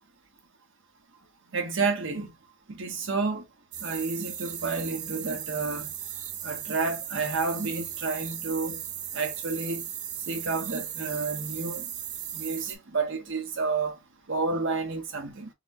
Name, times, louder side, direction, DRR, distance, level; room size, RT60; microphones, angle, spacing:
voice 1, 1.5-2.3 2.8-3.4 3.8-5.9 6.4-8.8 9.1-9.8 10.3-11.8 12.3-13.9 14.3-15.5, right 4 dB, 60° right, 0.9 m, -30 dB
sound 1, 3.7-12.8, right 10 dB, 35° right, 0.5 m, -37 dB
4.1 x 2.2 x 2.6 m
head